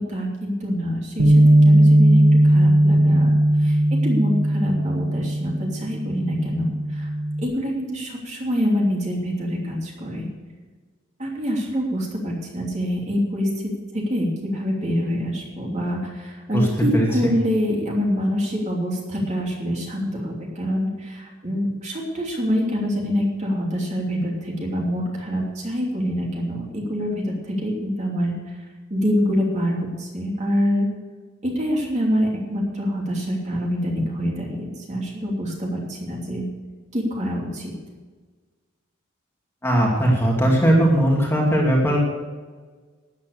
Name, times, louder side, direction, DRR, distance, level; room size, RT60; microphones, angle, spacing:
voice 1, 0.0-1.3 1.6-3.3 3.6-3.8 4.0-7.1 7.4-10.3 11.2-13.5 14.1-27.1 27.5-28.3 28.9-30.9 31.4-36.4 36.9-37.7, equal, 35° right, -2 dB, 3.1 m, -25 dB
Bass guitar, 1.2-7.4, right 1 dB, 80° right, 1.5 m, -17 dB
voice 2, 16.9-17.3 39.6-42.0, right 1 dB, 10° left, -2 dB, 2.4 m, -19 dB
12.5 x 9.6 x 6.7 m, 1.4 s
head